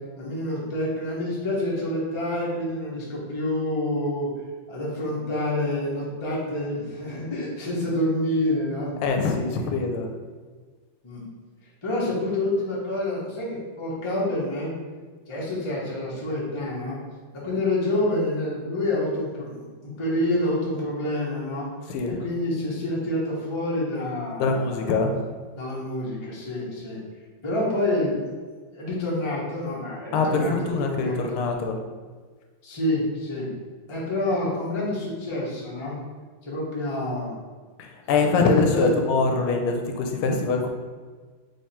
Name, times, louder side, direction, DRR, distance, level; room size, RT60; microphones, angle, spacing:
voice 1, 0.2-4.3 4.7-8.9 11.0-11.2 11.8-14.7 15.3-17.0 17.3-21.7 22.0-24.9 25.5-27.0 27.4-28.2 28.7-31.3 32.6-33.5 33.9-36.0 36.5-37.4 38.1-38.9, left 1 dB, 45° left, -5 dB, 0.3 m, -27 dB
voice 2, 9.0-10.1 21.9-22.2 24.4-25.1 30.1-31.8 37.8-40.7, left 4 dB, 85° left, 4 dB, 1.5 m, -23 dB
3.5 x 3.2 x 4.2 m, 1.5 s
omnidirectional pair, 2.3 m